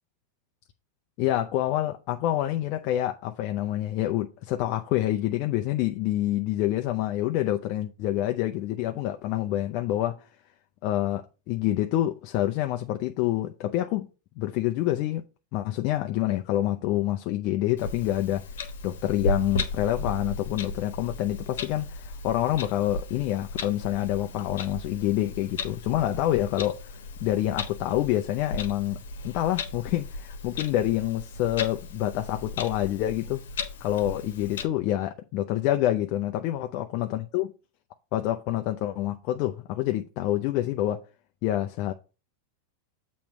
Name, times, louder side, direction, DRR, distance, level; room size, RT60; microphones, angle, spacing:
voice 1, 1.2-10.1 10.8-14.1 14.4-15.2 15.5-18.4 18.8-26.9 27.2-29.0 29.2-33.4 33.8-37.5 38.1-41.0 41.4-41.9, left 13 dB, 50° left, 0.6 m, -27 dB
Clock, 17.8-34.6, left 3 dB, 85° left, 1.1 m, -36 dB
7.1 x 3.1 x 5.8 m
supercardioid pair, 130°, 0 cm